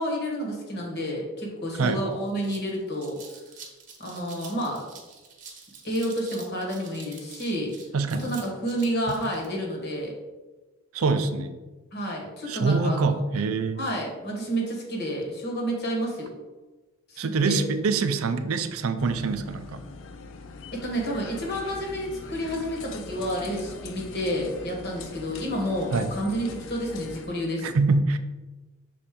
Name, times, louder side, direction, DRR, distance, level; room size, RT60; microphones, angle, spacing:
voice 1, 0.0-3.2 4.0-4.8 5.8-7.7 8.2-10.1 11.9-13.2 13.8-16.3 17.1-17.6 20.7-27.7, equal, 50° left, -1 dB, 1.4 m, -30 dB
sound 1, 1.7-1.8 2.1-9.5, right 5 dB, 35° right, 0.9 m, -47 dB
voice 2, 7.9-8.3 10.9-11.6 12.5-13.8 17.2-19.8 25.9-26.2 27.6-28.2, right 4 dB, 75° right, 10 dB, 0.5 m, -25 dB
sound 2, 19.0-27.3, left 4 dB, 65° left, 0.4 m, -42 dB
sound 3, 20.9-27.4, left 1 dB, 5° left, 0.7 m, -49 dB
6.1 x 4.2 x 3.7 m, 1.2 s
head